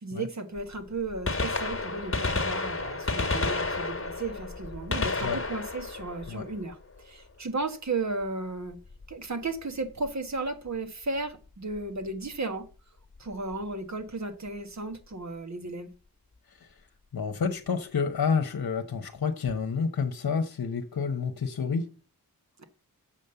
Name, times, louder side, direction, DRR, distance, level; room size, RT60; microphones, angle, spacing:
voice 1, 0.0-8.8 9.1-12.7 13.2-15.9 22.6-22.7, right 3 dB, 50° right, 1.5 m, -34 dB
Gunshot gunfire, 0.6-0.7 1.1-7.0 8.9-9.1 10.1-10.2 11.8-11.9 13.2-13.3 13.5-13.6, left 3 dB, 35° left, 1.5 m, -31 dB
voice 2, 17.1-21.9, left 5 dB, 65° left, 1.0 m, -29 dB
7.3 x 5.3 x 6.8 m
wide cardioid pair, 65°, 37 cm